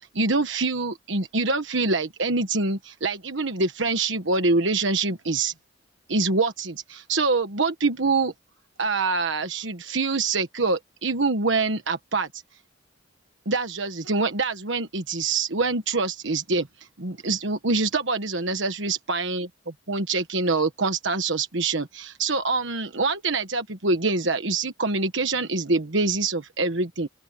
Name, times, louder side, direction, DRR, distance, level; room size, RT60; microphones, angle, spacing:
voice 1, 0.1-5.5 6.1-8.3 8.8-12.4 13.4-16.7 17.0-27.1, right 3 dB, 65° right, 1.4 m, -25 dB
open air
head